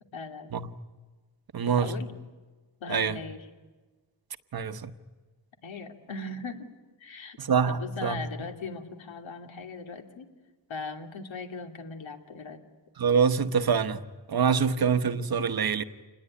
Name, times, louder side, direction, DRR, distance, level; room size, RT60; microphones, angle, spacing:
voice 1, 0.1-0.5 1.8-2.1 2.8-3.5 5.6-6.7 7.0-7.4 7.7-10.3 10.7-12.6, left 4 dB, 75° left, 2.8 m, -39 dB
voice 2, 1.5-1.9 2.9-3.2 4.5-4.9 7.4-8.2 13.0-14.0 14.3-15.8, right 6 dB, 50° right, 1.1 m, -25 dB
27.5 x 20.5 x 9.8 m
wide cardioid pair, 130°, 47 cm